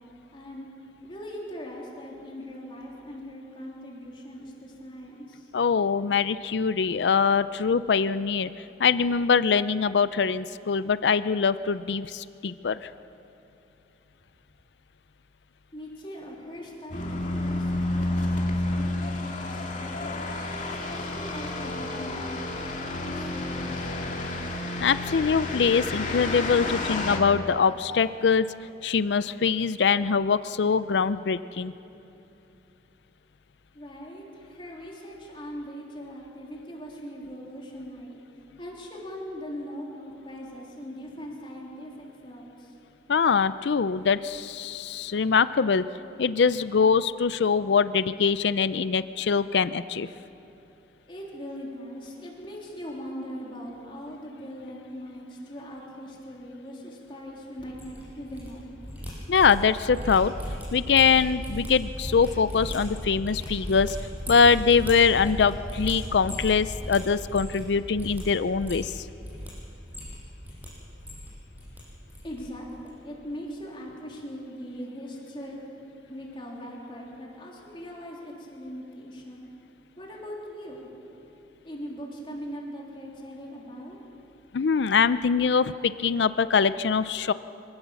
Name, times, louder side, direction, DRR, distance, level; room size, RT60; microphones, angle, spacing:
voice 1, 0.3-0.7 1.0-5.5 15.7-20.2 20.9-24.7 33.7-38.2 38.6-42.8 51.0-58.7 72.2-75.6 76.0-79.5 80.0-81.1 81.6-84.0, equal, 30° left, -3 dB, 3.3 m, -40 dB
voice 2, 5.5-8.5 8.8-12.8 24.8-28.5 28.8-31.7 43.1-45.8 46.2-50.1 59.3-60.3 60.7-64.0 64.3-69.0 84.5-87.3, left 5 dB, 75° left, 15 dB, 0.5 m, -23 dB
sound 1, 16.9-27.2, left 2 dB, 45° left, 2.4 m, -30 dB
sound 2, 57.6-58.5 58.7-67.7 67.9-68.2 68.5-69.5 69.8-70.7 70.9-71.8 72.1-72.4 72.7-72.9, equal, 10° right, 6.7 m, -36 dB
25.5 x 17.0 x 7.1 m, 2.8 s
head